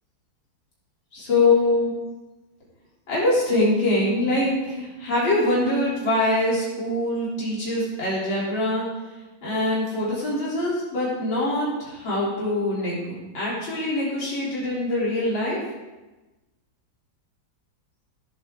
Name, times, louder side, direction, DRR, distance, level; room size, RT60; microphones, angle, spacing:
voice 1, 1.1-1.9 3.1-8.9 9.4-15.6, left 2 dB, 80° left, -7 dB, 4.2 m, -23 dB
16.5 x 8.2 x 3.7 m, 1.1 s
omnidirectional pair, 2.1 m